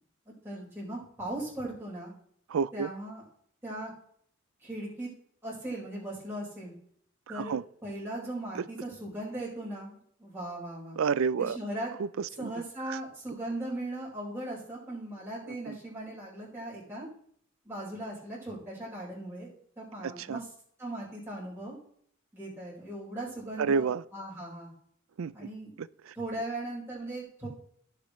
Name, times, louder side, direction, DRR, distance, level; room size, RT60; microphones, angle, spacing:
voice 1, 0.4-2.1 2.7-3.2 3.6-3.9 4.6-5.1 5.4-6.7 7.3-7.5 7.8-11.0 11.4-11.9 12.4-17.1 17.6-20.5 20.8-21.8 22.3-24.7 25.3-25.7 26.1-27.5, right 1 dB, 10° right, 4.9 m, -38 dB
voice 2, 2.5-2.9 7.3-7.6 8.5-8.6 11.0-11.6 12.0-12.5 12.9-13.0 15.5-15.8 20.0-20.4 23.6-24.0 25.2-25.3 25.8-26.1, right 5 dB, 90° right, 0.4 m, -30 dB
16.5 x 6.9 x 3.2 m
head